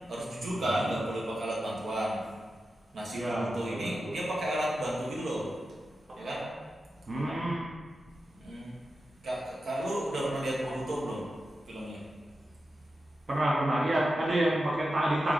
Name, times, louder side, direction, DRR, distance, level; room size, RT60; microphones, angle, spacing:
voice 1, 0.1-2.2 2.9-5.5 6.1-6.4 8.4-8.7 9.2-11.2 11.7-12.0, right 1 dB, 80° right, -5 dB, 0.9 m, -33 dB
voice 2, 0.7-1.0 3.1-4.1 6.1-6.4 7.1-7.8 13.3-15.3, right 1 dB, 45° right, -5 dB, 0.5 m, -29 dB
3.5 x 3.4 x 2.5 m, 1.5 s
wide cardioid pair, 125°, 0 cm